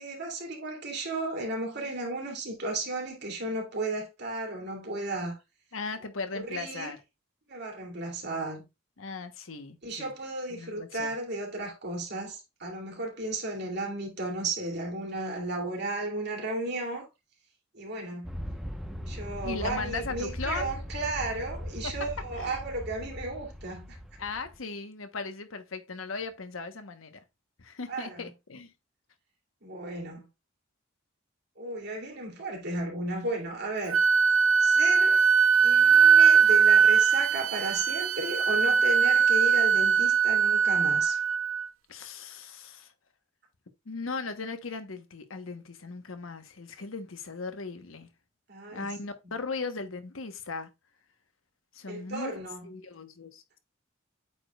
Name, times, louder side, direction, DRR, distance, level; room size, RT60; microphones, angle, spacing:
voice 1, 0.0-5.4 6.3-6.9 7.5-8.6 9.8-17.1 17.7-18.3 19.1-24.0 27.9-28.3 29.6-30.3 31.6-34.0 34.6-35.3 35.6-41.2 48.5-48.9 49.2-49.3 51.9-52.7, right 2 dB, 55° right, 2.7 m, -34 dB
voice 2, 5.7-7.0 9.0-10.1 10.5-11.1 19.4-20.7 21.8-21.9 22.4-22.5 24.2-27.2 27.6-28.7 41.9-42.9 43.9-48.1 48.7-50.7 51.7-52.3 52.6-53.6, left 4 dB, 85° left, 1.1 m, -37 dB
Aircraft, 18.2-24.6, equal, ahead, 1.0 m, -39 dB
Wind instrument woodwind instrument, 33.9-41.7, right 6 dB, 80° right, 0.7 m, -21 dB
8.4 x 5.0 x 2.3 m
head